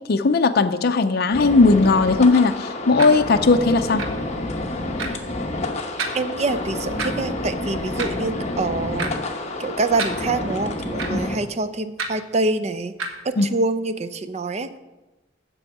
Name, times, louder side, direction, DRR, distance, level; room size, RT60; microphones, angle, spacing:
voice 1, 0.1-4.0 11.1-11.2 13.4-13.5, left 3 dB, 55° left, 8 dB, 0.5 m, -17 dB
sound 1, 1.3-11.4, left 2 dB, 35° left, 1.0 m, -29 dB
sound 2, 3.0-3.1 4.0-4.1 5.0-5.1 6.0-6.2 7.0-7.1 8.0-8.2 9.0-9.1 10.0-10.1 11.0-11.1 12.0-12.1 13.0-13.1, right 4 dB, 90° right, 1.2 m, -27 dB
voice 2, 6.1-9.1 9.6-12.9 13.2-14.8, right 3 dB, 35° right, 11 dB, 0.5 m, -25 dB
8.1 x 6.1 x 7.8 m, 1.1 s
head